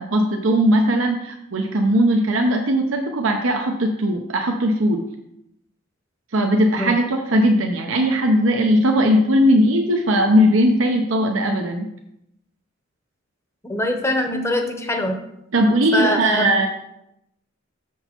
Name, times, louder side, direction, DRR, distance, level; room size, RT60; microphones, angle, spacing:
voice 1, 0.0-5.1 6.3-11.9 15.5-16.7, equal, 85° right, 3 dB, 0.8 m, -18 dB
voice 2, 13.7-15.2 15.9-16.5, left 1 dB, 15° left, 4 dB, 0.8 m, -23 dB
6.8 x 6.3 x 4.4 m, 0.81 s
head